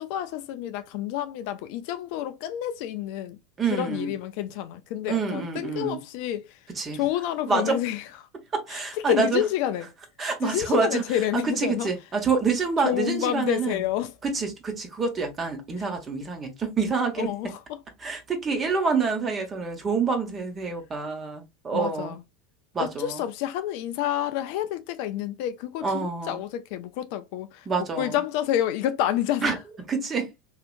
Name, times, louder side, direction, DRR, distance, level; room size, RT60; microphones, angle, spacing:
voice 1, 0.0-3.4 3.7-6.6 6.9-8.0 8.7-9.9 10.4-11.9 12.8-14.1 17.2-17.8 21.7-22.2 22.8-27.7 28.0-29.6, left 11 dB, 60° left, 0.4 m, -29 dB
voice 2, 3.6-4.1 5.1-6.0 6.7-7.1 7.5-7.8 8.5-9.4 10.2-11.0 11.3-13.8 14.2-17.3 18.0-22.2 22.7-23.2 25.8-26.4 27.7-28.2 29.4-29.6 29.9-30.3, right 4 dB, 30° right, 1.2 m, -27 dB
3.2 x 2.8 x 2.5 m
hypercardioid pair, 80°, 0 cm